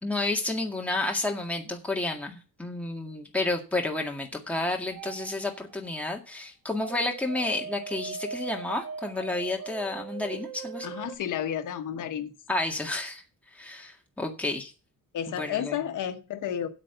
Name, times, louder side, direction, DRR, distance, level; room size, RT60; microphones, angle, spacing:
voice 1, 0.0-10.9 12.5-13.2 13.5-14.7 15.4-15.8, left 2 dB, 5° left, 1 dB, 1.9 m, -31 dB
sound 1, 4.9-5.9 6.8-11.2, right 7 dB, 65° right, 2.4 m, -40 dB
voice 2, 10.8-12.3 15.1-16.7, left 9 dB, 65° left, 8 dB, 1.3 m, -32 dB
8.8 x 7.9 x 6.7 m, 0.33 s
cardioid pair, 155°, 33 cm